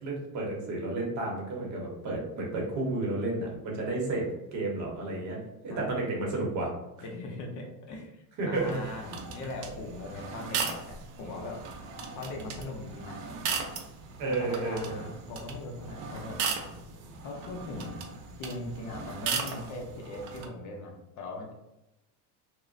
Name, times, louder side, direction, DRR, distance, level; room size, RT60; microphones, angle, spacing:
voice 1, 0.0-4.3 4.5-5.4 5.6-6.7 8.4-8.8 14.2-15.1, right 2 dB, 40° right, -1 dB, 0.8 m, -31 dB
voice 2, 5.7-6.1 7.0-11.6 12.1-13.2 14.2-16.4 17.2-18.0 18.4-21.5, left 2 dB, 45° left, 1 dB, 0.6 m, -40 dB
sound 1, 8.5-20.5, right 5 dB, 75° right, 0.7 m, -37 dB
2.9 x 2.1 x 2.5 m, 0.93 s
cardioid pair, 130°, 43 cm